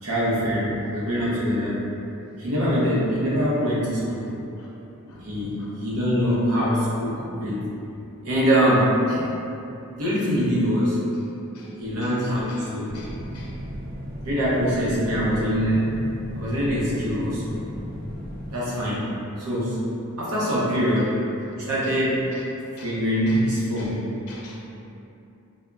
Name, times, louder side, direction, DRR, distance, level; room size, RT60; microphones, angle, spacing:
voice 1, 0.0-1.8 2.4-4.3 5.0-7.6 8.2-9.3 10.0-11.0 11.8-13.0 14.2-17.6 18.5-19.1 19.4-19.8 20.2-22.3 22.8-24.0, equal, 75° right, -7 dB, 0.6 m, -23 dB
voice 2, 12.9-13.5 21.8-21.9 22.3-22.4 22.8-22.9 23.3-23.4 23.8-23.9 24.3-24.6, left 3 dB, 85° left, -5 dB, 0.6 m, -46 dB
sound 1, 12.9-18.5, equal, 50° right, 0.8 m, -35 dB
3.6 x 2.0 x 2.2 m, 2.8 s
head